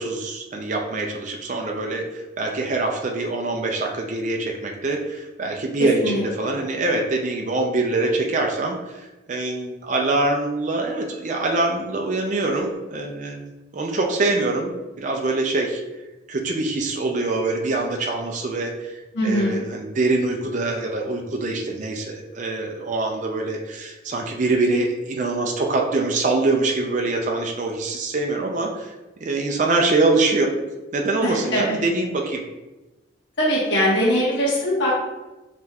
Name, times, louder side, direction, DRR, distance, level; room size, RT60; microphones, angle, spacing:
voice 1, 0.0-15.8 16.3-28.9 29.2-30.5 30.9-32.4, right 2 dB, 40° right, 1 dB, 0.4 m, -24 dB
voice 2, 5.8-6.6 19.1-19.6 31.2-31.8 33.4-34.9, equal, 60° left, -7 dB, 1.3 m, -22 dB
5.6 x 3.2 x 2.3 m, 1.1 s
head